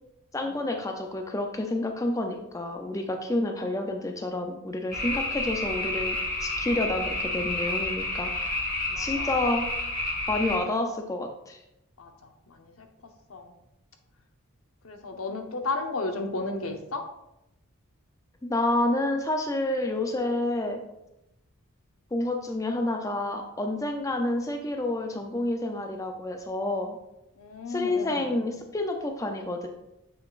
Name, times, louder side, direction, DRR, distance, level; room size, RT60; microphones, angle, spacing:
voice 1, 0.3-8.6 9.0-9.7 10.3-11.6 18.4-20.8 22.1-27.0 27.7-29.7, left 2 dB, 15° left, 4 dB, 0.4 m, -29 dB
sound 1, 4.9-10.6, left 2 dB, 40° left, 1.4 m, -30 dB
voice 2, 8.9-9.3 12.0-12.1 12.5-12.9 13.3-13.5 14.8-17.0 27.4-28.3, left 3 dB, 75° left, 5 dB, 0.8 m, -33 dB
7.1 x 6.1 x 2.5 m, 0.86 s
head